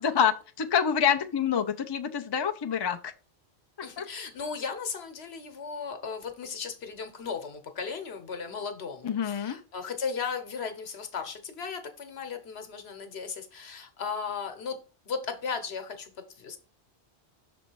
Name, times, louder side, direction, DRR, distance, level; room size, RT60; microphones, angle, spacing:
voice 1, 0.0-3.1 4.0-4.1 9.0-9.6, left 8 dB, 35° left, 6 dB, 0.4 m, -27 dB
voice 2, 3.8-14.8 15.1-16.6, left 5 dB, 70° left, 7 dB, 1.2 m, -36 dB
6.2 x 4.1 x 4.5 m, 0.35 s
omnidirectional pair, 1.1 m